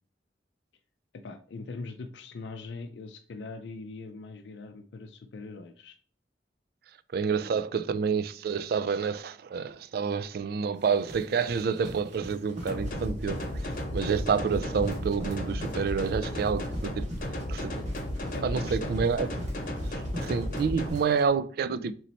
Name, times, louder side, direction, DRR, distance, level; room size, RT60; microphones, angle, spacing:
voice 1, 1.2-6.0 7.3-7.6 18.3-19.0, left 3 dB, 80° left, 0.4 m, -42 dB
voice 2, 7.1-17.1 17.5-17.8 18.4-19.3 19.8-21.9, right 6 dB, 55° right, 0.3 m, -28 dB
sound 1, 10.7-21.3, equal, 40° right, 1.5 m, -44 dB
sound 2, 12.7-20.9, left 1 dB, 50° left, 0.8 m, -34 dB
4.0 x 3.1 x 4.2 m
head